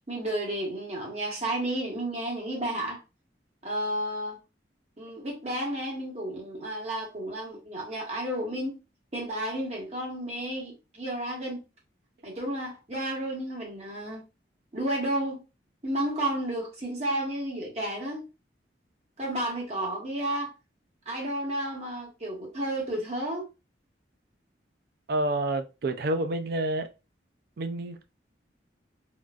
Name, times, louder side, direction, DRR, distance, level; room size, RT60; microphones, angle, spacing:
voice 1, 0.1-3.0 3.6-4.4 5.0-8.8 9.1-11.6 12.2-14.2 14.7-15.4 15.8-18.2 19.2-20.5 21.1-23.5, right 1 dB, 35° right, 1.2 m, -32 dB
voice 2, 25.1-26.9 27.6-28.2, right 2 dB, 55° right, 0.4 m, -29 dB
3.8 x 2.3 x 2.3 m
head